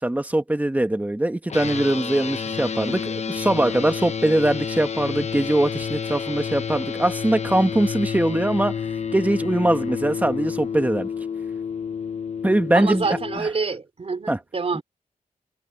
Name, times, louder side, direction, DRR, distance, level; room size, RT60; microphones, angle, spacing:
voice 1, 0.0-8.7 9.1-11.1 12.4-13.1 13.4-13.5 14.3-14.4, right 1 dB, 10° right, 1.3 m, -22 dB
sound 1, 1.5-13.4, left 6 dB, 50° left, 0.8 m, -29 dB
voice 2, 12.7-14.8, right 4 dB, 45° right, 3.4 m, -27 dB
wide cardioid pair, 150°, 14 cm